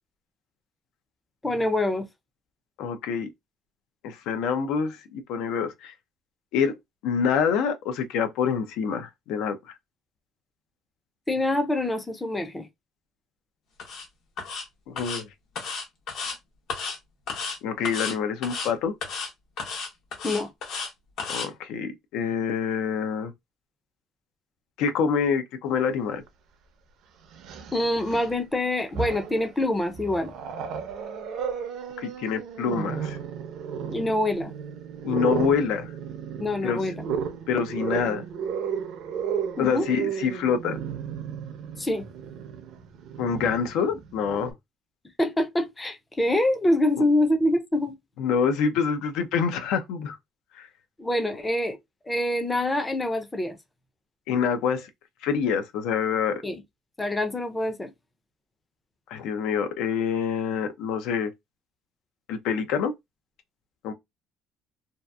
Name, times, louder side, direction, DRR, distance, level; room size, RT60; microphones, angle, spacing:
voice 1, 1.4-2.1 11.3-12.7 20.2-20.5 27.7-30.3 33.9-34.5 36.4-37.1 39.6-39.9 41.8-42.1 45.2-47.9 51.0-51.8 52.1-53.6 56.4-56.6 57.0-57.9, left 1 dB, 10° left, 0.4 m, -25 dB
voice 2, 2.8-3.3 4.0-5.9 6.5-6.8 7.0-9.6 14.9-15.3 17.6-18.9 21.3-23.3 24.8-26.2 32.0-33.2 35.0-35.9 36.6-36.8 37.5-38.2 39.6-40.8 43.2-44.5 48.2-50.2 50.6-50.7 54.3-54.9 55.2-56.4 59.1-61.3 62.3-62.9 63.8-63.9, left 6 dB, 85° left, 0.4 m, -26 dB
sound 1, 13.8-14.0 14.4-14.6 15.0-15.2 15.6-16.4 16.7-17.0 17.3-17.6 17.8-18.1 18.4-18.7 19.0-19.3 19.6-20.9 21.2-21.5, left 4 dB, 65° left, 0.9 m, -33 dB
Growling, 26.3-26.4 27.3-28.4 28.8-29.5 29.9-44.5, right 7 dB, 70° right, 0.5 m, -34 dB
2.7 x 2.4 x 2.2 m
cardioid pair, 140°, 0 cm